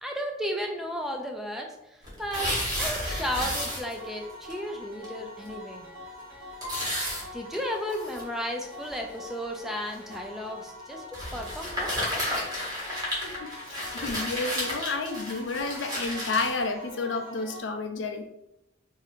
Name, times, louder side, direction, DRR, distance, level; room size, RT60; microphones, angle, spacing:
voice 1, 0.0-2.5 2.8-5.9 7.3-11.0 11.3-11.9, equal, ahead, 1 dB, 0.3 m, -34 dB
sound 1, 2.0-4.2 4.5-4.6 5.0-5.1 5.5-5.6 6.6-8.2 8.9-9.0 9.9-10.2 11.1-16.6, equal, 20° right, 1.1 m, -32 dB
sound 2, 2.8-17.6, left 1 dB, 50° right, 1.2 m, -45 dB
Piano, 6.6-8.7, left 3 dB, 30° left, 0.7 m, -46 dB
voice 2, 13.2-18.3, left 3 dB, 75° left, 6 dB, 0.5 m, -31 dB
2.8 x 2.5 x 4.1 m, 0.86 s
head